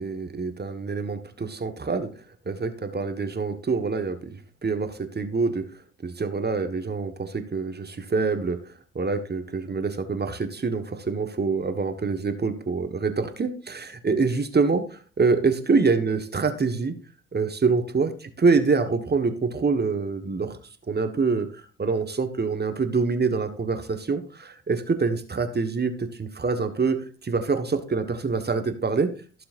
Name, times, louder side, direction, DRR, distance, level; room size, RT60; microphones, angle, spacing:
voice 1, 0.0-2.1 2.4-5.6 6.0-8.6 8.9-16.9 17.3-20.6 20.9-29.1, right 4 dB, 30° right, 8 dB, 1.6 m, -25 dB
16.0 x 6.8 x 2.6 m, 0.38 s
hypercardioid pair, 50°, 33 cm